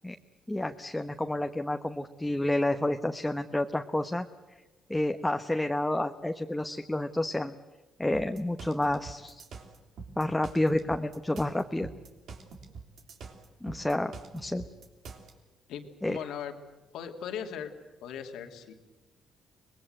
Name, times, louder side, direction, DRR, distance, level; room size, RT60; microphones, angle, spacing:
voice 1, 0.5-4.3 4.9-7.5 8.0-9.4 10.2-11.9 13.6-14.6 16.0-16.2, left 1 dB, 10° left, 5 dB, 1.1 m, -29 dB
sound 1, 8.1-15.3, right 4 dB, 70° right, 3.2 m, -45 dB
voice 2, 15.7-16.6 16.9-17.7 18.0-18.7, left 8 dB, 85° left, 5 dB, 2.6 m, -38 dB
25.0 x 20.5 x 8.0 m, 1.2 s
cardioid pair, 90°, 0 cm